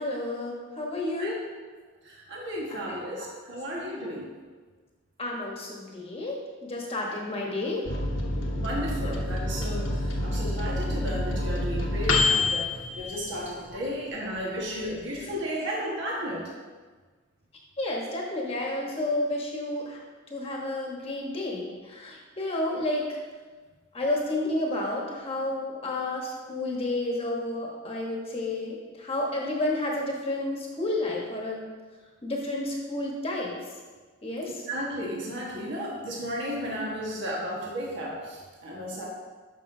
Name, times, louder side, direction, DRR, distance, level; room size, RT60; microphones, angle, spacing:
voice 1, 0.0-1.4 2.9-3.3 5.2-7.8 15.2-15.3 17.8-20.0 20.3-23.2 23.9-31.7 32.2-33.5 34.2-34.5, left 2 dB, 30° left, -2 dB, 1.2 m, -31 dB
voice 2, 2.0-4.3 8.6-16.5 34.7-39.1, equal, 60° right, -4 dB, 1.5 m, -34 dB
Microwave oven, 7.8-13.9 14.3-14.4 14.7-15.3, left 2 dB, 65° left, 1.0 m, -28 dB
12.0 x 5.6 x 2.7 m, 1.4 s
head